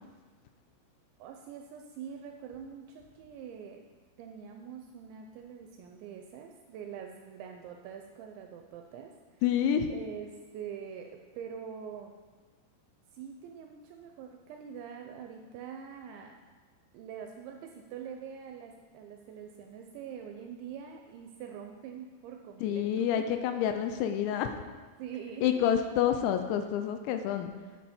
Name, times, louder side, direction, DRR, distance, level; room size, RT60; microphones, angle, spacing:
voice 1, 1.2-3.8 4.2-9.4 9.9-12.2 13.1-16.3 16.9-23.3 25.0-25.7, right 7 dB, 80° right, 4 dB, 2.7 m, -44 dB
voice 2, 9.4-9.9 22.6-24.6 25.4-27.5, left 9 dB, 80° left, 7 dB, 2.7 m, -28 dB
10.0 x 8.4 x 4.3 m, 1.4 s
omnidirectional pair, 5.6 m